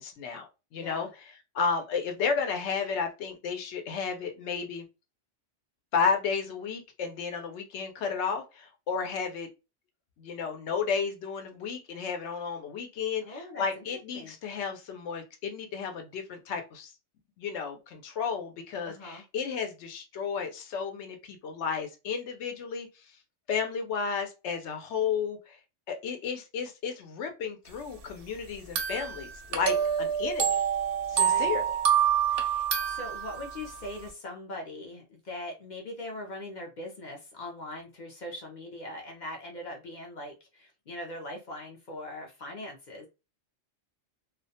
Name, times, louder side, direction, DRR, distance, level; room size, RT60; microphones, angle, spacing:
voice 1, 0.0-4.9 5.9-9.5 10.2-16.9 17.4-23.0 23.5-25.6 25.9-30.6 31.1-31.8, left 6 dB, 75° left, 5 dB, 0.9 m, -33 dB
voice 2, 0.8-1.1 13.2-13.8 14.1-14.3 18.9-19.2 31.1-31.6 32.3-43.1, left 1 dB, 50° left, 1 dB, 0.6 m, -41 dB
sound 1, 28.8-33.7, right 8 dB, 60° right, 0.7 m, -27 dB
2.3 x 2.1 x 2.6 m, 0.28 s
omnidirectional pair, 1.2 m